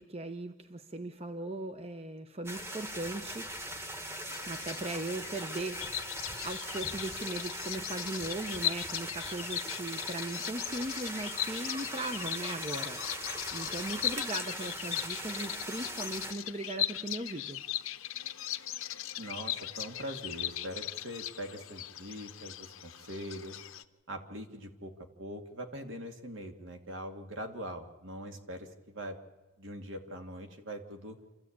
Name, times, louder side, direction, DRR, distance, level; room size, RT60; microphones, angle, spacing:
voice 1, 0.0-3.5 4.5-5.8 6.4-13.0 13.5-17.6, right 2 dB, 30° right, 8 dB, 0.8 m, -38 dB
sound 1, 2.5-16.3, right 1 dB, 10° right, 1.4 m, -40 dB
Bird vocalization bird call bird song, 4.3-23.8, left 12 dB, 80° left, 0.9 m, -39 dB
voice 2, 19.2-23.6 24.1-24.9 25.2-29.2 29.6-31.2, equal, 65° right, 5 dB, 2.2 m, -42 dB
27.0 x 14.0 x 8.6 m, 1.2 s
head